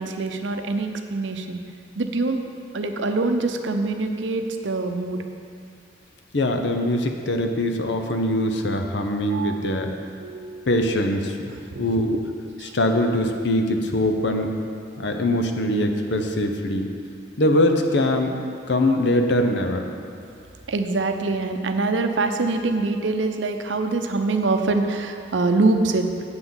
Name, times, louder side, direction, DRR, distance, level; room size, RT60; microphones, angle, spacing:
voice 1, 0.0-1.6 2.0-5.2 7.2-7.5 9.3-9.6 10.2-11.0 11.7-12.2 12.6-12.8 20.7-26.1, right 3 dB, 75° right, 6 dB, 0.7 m, -25 dB
voice 2, 6.3-9.9 10.7-11.5 11.8-12.1 12.7-14.5 15.0-16.9 17.4-18.4 18.7-19.9, left 1 dB, 65° left, 5 dB, 0.8 m, -22 dB
8.0 x 5.9 x 7.1 m, 2.4 s
head